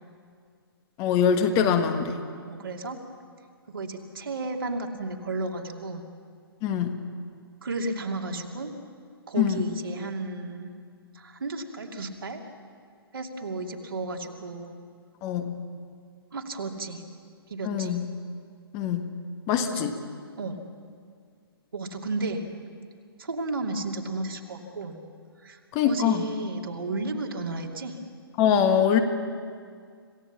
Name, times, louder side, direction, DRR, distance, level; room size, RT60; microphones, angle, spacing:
voice 1, 1.0-2.1 6.6-6.9 9.4-9.6 15.2-15.6 17.6-18.0 18.7-19.1 19.5-19.9 25.7-26.2 28.4-29.0, left 8 dB, 25° left, 7 dB, 1.4 m, -23 dB
voice 2, 2.5-3.0 3.7-6.0 7.6-8.7 9.3-10.7 11.1-12.4 13.1-14.7 16.3-17.0 17.5-18.0 19.6-19.9 20.4-20.6 21.7-22.5 23.2-25.0 25.4-28.0, right 2 dB, 65° right, 2 dB, 2.6 m, -33 dB
26.5 x 16.5 x 7.3 m, 2.1 s
figure-of-eight pair, 125°, 13 cm